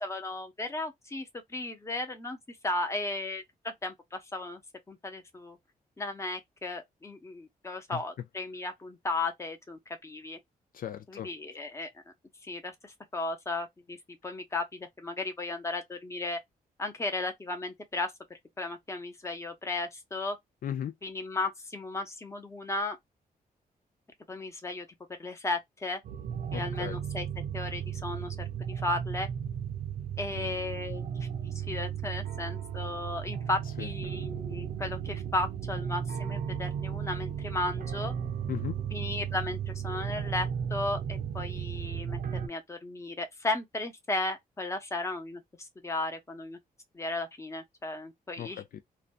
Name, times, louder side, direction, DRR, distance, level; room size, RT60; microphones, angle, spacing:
voice 1, 0.0-4.6 4.9-5.6 6.0-10.4 11.1-11.9 12.4-14.0 14.2-16.4 16.8-20.4 21.0-23.0 24.3-24.9 25.2-26.0 26.5-27.3 27.5-29.3 30.2-38.1 38.9-45.4 45.8-46.6 46.9-48.6, left 2 dB, 20° left, 0.8 m, -35 dB
voice 2, 10.7-11.3 20.6-20.9 26.5-27.0 33.8-33.9 38.5-38.8 48.4-48.8, left 10 dB, 65° left, 0.4 m, -36 dB
sound 1, 26.0-42.5, right 8 dB, 65° right, 0.5 m, -35 dB
2.5 x 2.3 x 2.4 m
wide cardioid pair, 145°, 16 cm